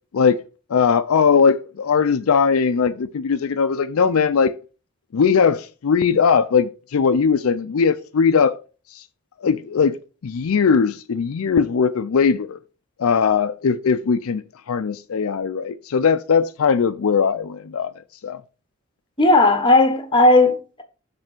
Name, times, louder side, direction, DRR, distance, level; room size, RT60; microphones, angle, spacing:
voice 1, 0.7-4.5 5.1-8.6 8.9-9.0 9.4-12.6 13.0-17.9 18.2-18.4, left 6 dB, 70° left, 0.4 m, -19 dB
voice 2, 19.2-20.8, left 2 dB, 20° left, 1.0 m, -15 dB
6.6 x 3.4 x 6.0 m
head